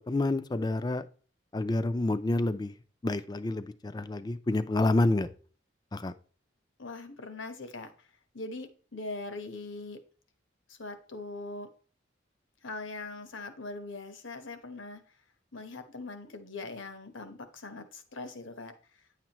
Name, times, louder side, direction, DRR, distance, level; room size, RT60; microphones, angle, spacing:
voice 1, 0.1-1.0 1.5-2.7 3.0-5.3 5.9-6.1, left 2 dB, 20° left, 13 dB, 0.4 m, -28 dB
voice 2, 6.8-8.1 8.3-10.0 10.7-11.7 12.6-15.0 15.5-18.7, left 3 dB, 80° left, 8 dB, 1.2 m, -41 dB
9.9 x 7.2 x 3.0 m, 0.40 s
head